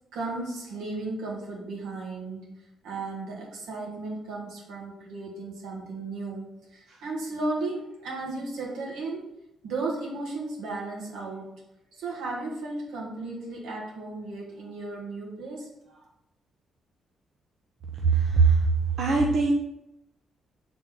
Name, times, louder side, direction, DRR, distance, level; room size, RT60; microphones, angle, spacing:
voice 1, 0.1-9.3 9.6-11.6 11.9-16.1, right 2 dB, 85° right, -2 dB, 2.0 m, -35 dB
voice 2, 18.0-18.7 19.0-19.5, right 4 dB, 65° right, -1 dB, 0.8 m, -21 dB
6.4 x 4.2 x 3.7 m, 0.83 s
cardioid pair, 90°, 0 cm